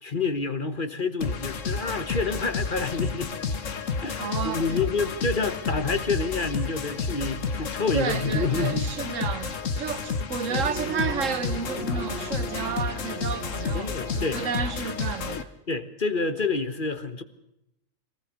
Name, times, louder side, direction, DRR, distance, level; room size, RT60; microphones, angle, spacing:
voice 1, 0.0-3.3 4.0-8.9 13.7-14.4 15.7-17.2, left 4 dB, 40° left, 1.5 m, -28 dB
sound 1, 1.2-15.4, left 5 dB, 70° left, 1.6 m, -31 dB
voice 2, 4.2-4.8 7.9-15.5, right 6 dB, 70° right, 1.3 m, -31 dB
sound 2, 10.5-15.4, right 3 dB, 50° right, 1.4 m, -40 dB
22.5 x 18.5 x 6.5 m
omnidirectional pair, 1.4 m